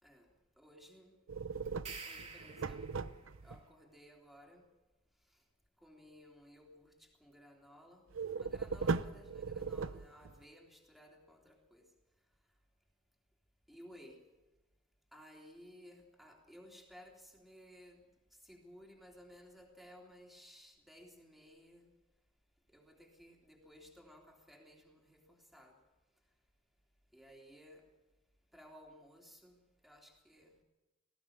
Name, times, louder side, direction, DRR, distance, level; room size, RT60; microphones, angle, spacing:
voice 1, 0.0-1.2 2.0-4.7 5.1-5.5 5.8-12.6 13.7-14.3 15.1-22.0 22.7-26.4 27.1-28.0 28.5-30.6, equal, ahead, 0 dB, 3.3 m, -58 dB
sound 1, 1.3-3.6 8.1-10.4, right 4 dB, 65° right, 0.7 m, -38 dB
sound 2, 1.7-3.2, right 5 dB, 30° right, 2.6 m, -49 dB
19.5 x 15.5 x 8.6 m, 1.1 s
head